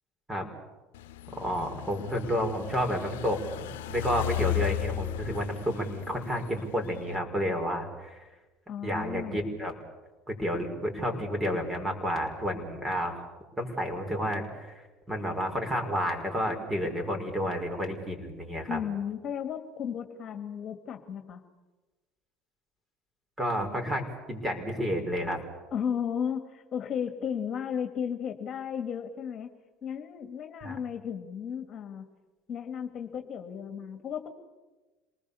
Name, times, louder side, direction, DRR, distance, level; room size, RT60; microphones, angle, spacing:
sound 1, 0.9-7.2, left 14 dB, 85° left, 1.0 m, -36 dB
voice 1, 1.3-8.2 8.8-9.7 10.3-13.3 13.6-14.8 15.1-18.8 23.4-25.4 30.6-30.8, equal, 15° right, 4 dB, 5.8 m, -31 dB
voice 2, 8.7-9.4 18.7-21.4 25.7-29.5 29.8-32.1 32.5-34.3, left 8 dB, 45° left, 6 dB, 2.2 m, -34 dB
27.5 x 19.5 x 7.1 m, 1.2 s
hypercardioid pair, 80°, 0 cm